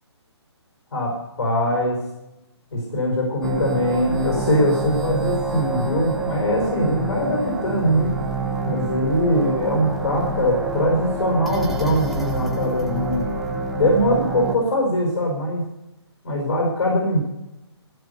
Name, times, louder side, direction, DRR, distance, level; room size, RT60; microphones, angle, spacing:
voice 1, 0.9-2.0 2.7-8.1 8.6-13.2 13.7-15.6 16.2-17.2, equal, 75° left, -1 dB, 4.8 m, -22 dB
sound 1, 3.4-14.6, right 2 dB, ahead, 0.5 m, -27 dB
15.5 x 6.9 x 8.1 m, 0.95 s
hypercardioid pair, 170°, 14 cm